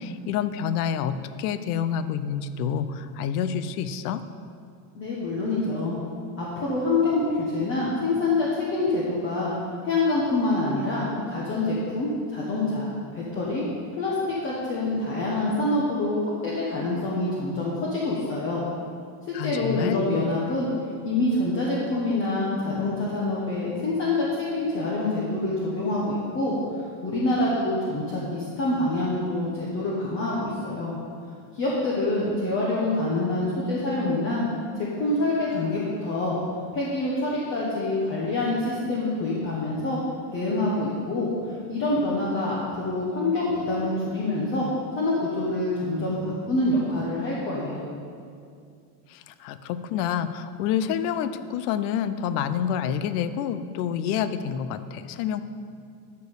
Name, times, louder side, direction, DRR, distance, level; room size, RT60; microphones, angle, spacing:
voice 1, 0.0-4.2 19.3-20.1 49.1-55.4, left 8 dB, 80° left, 12 dB, 0.7 m, -28 dB
voice 2, 4.9-6.0 6.4-9.5 9.8-13.6 13.9-18.6 19.3-20.7 21.0-26.5 27.0-30.9 31.5-34.4 34.8-36.4 36.7-40.0 40.3-44.7 45.0-47.8, left 2 dB, 25° left, -6 dB, 1.3 m, -26 dB
13.0 x 4.7 x 6.7 m, 2.4 s
cardioid pair, 175°, 45 cm